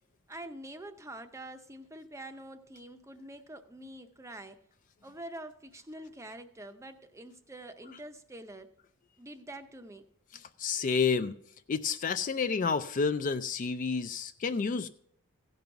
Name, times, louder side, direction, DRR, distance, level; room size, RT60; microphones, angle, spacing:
voice 1, 0.3-4.6 5.0-8.7 9.2-10.0, right 1 dB, 15° right, 0.6 m, -46 dB
voice 2, 10.3-11.3 11.7-14.9, left 5 dB, 35° left, 0.3 m, -30 dB
16.0 x 5.4 x 5.8 m
head